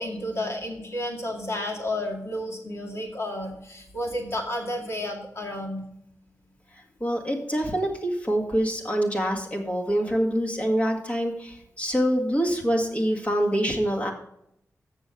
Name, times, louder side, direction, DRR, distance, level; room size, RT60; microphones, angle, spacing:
voice 1, 0.0-5.8, left 1 dB, 50° left, 0 dB, 2.1 m, -31 dB
voice 2, 7.0-14.1, equal, 25° left, 1 dB, 1.8 m, -25 dB
7.2 x 6.9 x 6.9 m, 0.76 s
wide cardioid pair, 115°, 6 cm